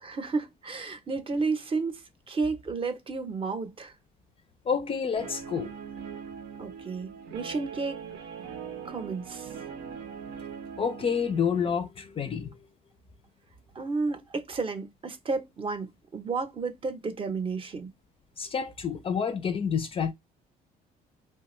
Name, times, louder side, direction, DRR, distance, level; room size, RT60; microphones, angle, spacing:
voice 1, 0.0-3.9 6.6-8.0 8.8-9.5 13.7-17.9, right 4 dB, 30° right, 0.7 m, -32 dB
voice 2, 4.7-5.7 10.8-12.5 18.4-20.1, left 6 dB, 35° left, 0.4 m, -28 dB
Guitar, 5.1-11.7, right 7 dB, 90° right, 0.9 m, -41 dB
3.2 x 2.3 x 3.0 m
cardioid pair, 110°, 17 cm